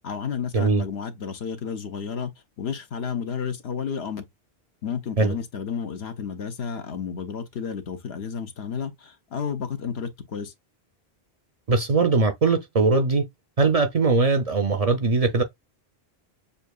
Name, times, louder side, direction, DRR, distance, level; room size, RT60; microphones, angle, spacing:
voice 1, 0.0-2.3 2.6-4.3 4.8-10.5, left 7 dB, 85° left, 1.1 m, -31 dB
voice 2, 11.7-13.2 13.6-15.4, right 3 dB, 50° right, 0.5 m, -20 dB
6.7 x 2.5 x 2.3 m
omnidirectional pair, 1.0 m